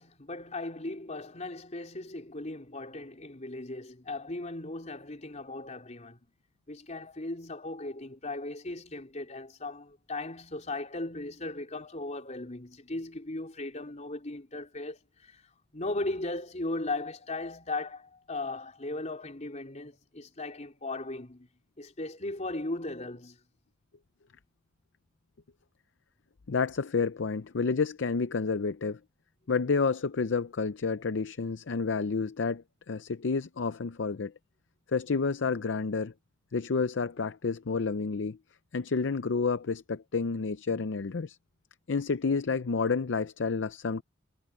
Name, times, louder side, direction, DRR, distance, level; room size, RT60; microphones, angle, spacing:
voice 1, 0.0-6.2 6.7-15.4 15.7-21.5 21.8-23.4, left 2 dB, 35° left, 3.8 m, -37 dB
voice 2, 26.5-29.0 29.5-34.3 34.9-36.1 36.5-38.4 38.7-41.4 41.9-44.0, left 4 dB, 65° left, 0.6 m, -30 dB
head